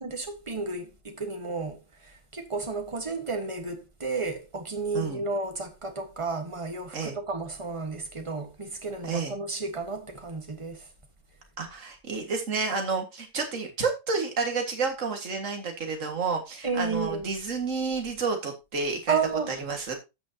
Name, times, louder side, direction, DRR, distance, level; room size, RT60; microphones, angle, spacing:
voice 1, 0.0-10.9 16.6-17.3 19.1-19.5, right 4 dB, 20° right, 1.2 m, -32 dB
voice 2, 9.0-9.3 11.6-19.2 19.5-20.0, right 4 dB, 40° right, 2.1 m, -30 dB
14.0 x 6.3 x 2.8 m
omnidirectional pair, 2.0 m